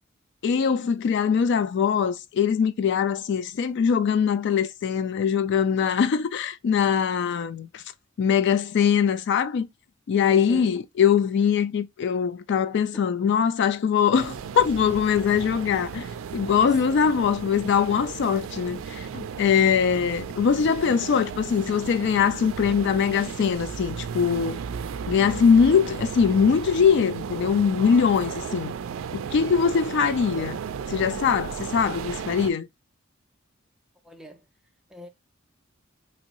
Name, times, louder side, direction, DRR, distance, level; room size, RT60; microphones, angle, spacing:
voice 1, 0.4-7.8 8.2-9.7 10.1-16.1 16.3-24.6 25.1-28.7 29.1-30.6 30.9-32.7, left 7 dB, 60° left, 0.3 m, -22 dB
voice 2, 10.3-10.7 16.9-17.0 28.1-28.5 34.0-34.4 34.9-35.1, right 2 dB, 5° right, 0.4 m, -42 dB
sound 1, 14.1-32.5, right 7 dB, 85° right, 0.3 m, -35 dB
3.1 x 2.6 x 2.9 m
head